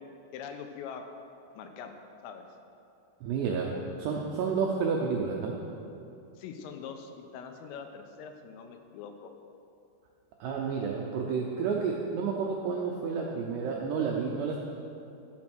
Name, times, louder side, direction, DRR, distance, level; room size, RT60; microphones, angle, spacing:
voice 1, 0.3-1.0 1.5-1.9 2.2-2.4 6.4-9.3, left 6 dB, 85° left, 5 dB, 3.3 m, -43 dB
voice 2, 3.2-5.6 10.4-14.6, right 5 dB, 85° right, -1 dB, 2.4 m, -30 dB
13.0 x 7.5 x 6.1 m, 2.7 s
omnidirectional pair, 5.9 m